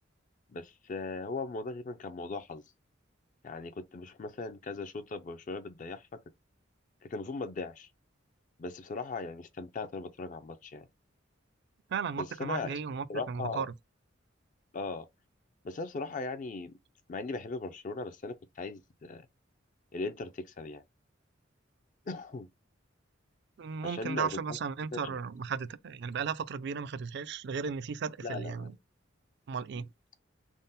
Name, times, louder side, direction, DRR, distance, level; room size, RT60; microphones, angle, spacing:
voice 1, 0.5-2.6 3.4-6.2 7.0-7.9 8.6-10.9 12.2-12.7 13.1-13.7 14.7-15.1 15.6-16.7 17.1-19.3 19.9-20.8 22.1-22.5 23.8-24.6 24.9-25.2 28.2-28.7, left 3 dB, 40° left, 0.4 m, -38 dB
voice 2, 11.9-13.7 23.6-28.7 29.5-29.9, right 6 dB, 60° right, 0.4 m, -35 dB
3.7 x 2.0 x 4.0 m
head